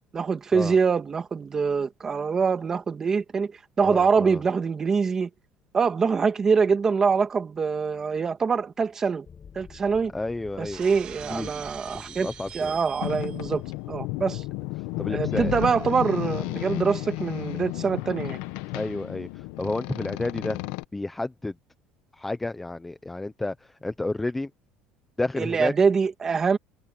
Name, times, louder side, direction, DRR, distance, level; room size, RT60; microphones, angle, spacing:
voice 1, 0.1-3.5 3.8-5.3 5.7-9.3 9.6-10.1 10.6-12.3 12.5-13.6 13.9-14.4 15.1-18.4 25.4-26.6, right 5 dB, 20° right, 1.8 m, -24 dB
voice 2, 3.8-4.4 10.1-10.8 11.3-11.6 11.9-12.8 15.0-15.5 16.5-16.7 18.7-19.3 19.6-20.6 20.9-21.5 22.2-23.5 23.8-24.5 25.2-25.7, left 2 dB, 5° left, 0.7 m, -31 dB
sound 1, 9.3-17.0, left 6 dB, 25° left, 6.8 m, -51 dB
Shatter, 10.7-13.5, right 10 dB, 40° right, 3.1 m, -43 dB
Boat Water vehicle, 13.0-20.8, left 20 dB, 80° left, 1.0 m, -32 dB
cardioid pair, 170°, 3 cm